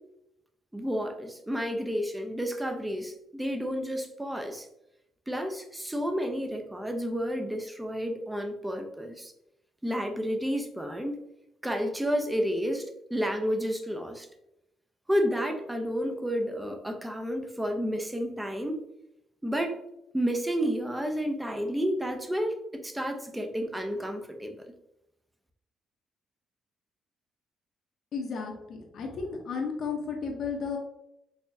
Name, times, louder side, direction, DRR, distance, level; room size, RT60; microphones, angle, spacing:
voice 1, 0.7-4.7 5.3-9.3 9.8-11.2 11.6-14.3 15.1-18.8 19.4-19.8 20.1-24.6, equal, 10° right, 5 dB, 0.6 m, -31 dB
voice 2, 28.1-30.8, left 5 dB, 65° left, 1 dB, 0.8 m, -33 dB
4.1 x 2.9 x 2.7 m, 0.84 s
cardioid pair, 90°, 0 cm